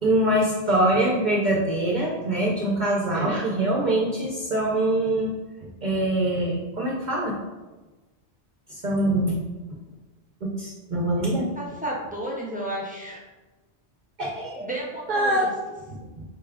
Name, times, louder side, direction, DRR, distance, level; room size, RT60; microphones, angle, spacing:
voice 1, 0.0-5.3 5.8-7.4 8.7-9.4 10.4-11.5 14.2-14.6 15.1-15.5 15.9-16.2, right 1 dB, 50° right, -3 dB, 0.7 m, -24 dB
voice 2, 11.6-13.2 14.6-15.5, right 1 dB, 10° right, -4 dB, 0.6 m, -32 dB
5.3 x 2.3 x 3.4 m, 1.2 s
omnidirectional pair, 1.2 m